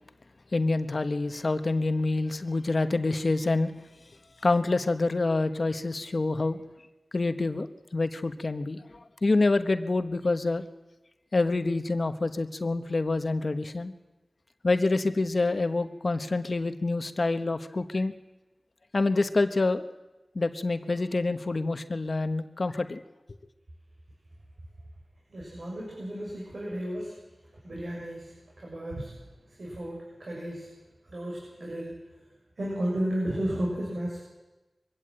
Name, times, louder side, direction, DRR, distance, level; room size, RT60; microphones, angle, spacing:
voice 1, 0.5-3.7 4.4-6.6 7.1-10.6 11.3-13.9 14.6-18.1 18.9-19.8 20.3-23.0, left 3 dB, 60° left, 10 dB, 1.1 m, -27 dB
voice 2, 25.3-27.1 27.6-29.1 29.6-30.7 31.1-31.9 32.6-34.2, right 1 dB, 75° right, -4 dB, 6.8 m, -33 dB
23.0 x 15.5 x 8.9 m, 1.1 s
wide cardioid pair, 65°, 0 cm